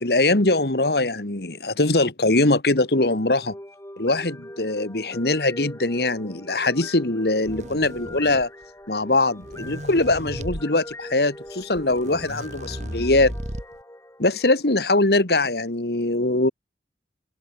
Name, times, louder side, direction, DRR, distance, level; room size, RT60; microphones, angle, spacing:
voice 1, 0.0-3.6 4.0-8.5 8.9-13.3 14.2-16.5, left 2 dB, 60° left, 1.9 m, -22 dB
sound 1, 2.8-15.0, left 1 dB, 15° left, 4.2 m, -42 dB
sound 2, 7.4-8.6 9.3-10.6 11.5-11.6 11.8-13.8, equal, 40° right, 6.2 m, -35 dB
head